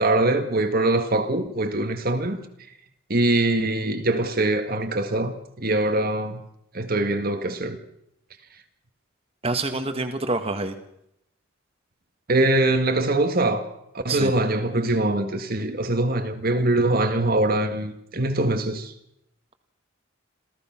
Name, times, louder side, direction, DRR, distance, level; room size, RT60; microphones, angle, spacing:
voice 1, 0.0-2.4 3.1-6.4 6.7-7.8 12.3-13.7 13.9-18.9, right 2 dB, 45° right, 1.9 m, -23 dB
voice 2, 9.4-10.8 14.1-14.3, right 2 dB, 30° right, 2.0 m, -26 dB
27.5 x 16.5 x 6.1 m
head